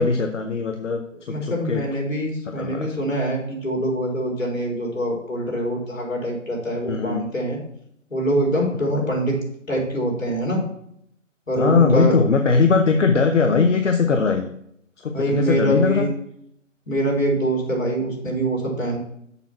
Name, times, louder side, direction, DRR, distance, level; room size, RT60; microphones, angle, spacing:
voice 1, 0.0-1.9 2.5-2.9 6.8-7.2 11.6-14.5 15.0-16.1, left 4 dB, 65° left, 5 dB, 0.9 m, -20 dB
voice 2, 1.3-7.6 8.1-9.4 9.7-10.6 11.5-12.2 15.1-16.1 16.9-19.0, right 1 dB, 80° left, -2 dB, 4.0 m, -24 dB
6.9 x 5.9 x 6.0 m, 0.73 s
figure-of-eight pair, 150°, 39 cm